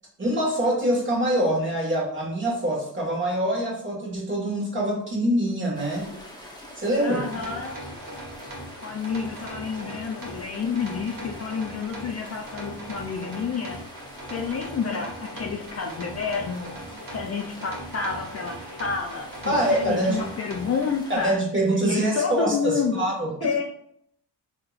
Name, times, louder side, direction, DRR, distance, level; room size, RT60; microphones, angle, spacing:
voice 1, 0.2-6.1 6.8-7.2 19.5-20.3 21.1-23.5, right 1 dB, 25° right, -3 dB, 1.5 m, -24 dB
sound 1, 5.7-21.3, left 1 dB, 10° left, 0.8 m, -44 dB
voice 2, 7.0-7.8 8.8-13.8 14.3-16.7 17.1-21.4 21.8-23.0 23.4-23.7, left 5 dB, 35° left, 1 dB, 0.5 m, -29 dB
sound 2, 7.2-20.9, right 1 dB, 50° right, 1.2 m, -40 dB
3.7 x 2.8 x 2.4 m, 0.68 s
cardioid pair, 75°, 43 cm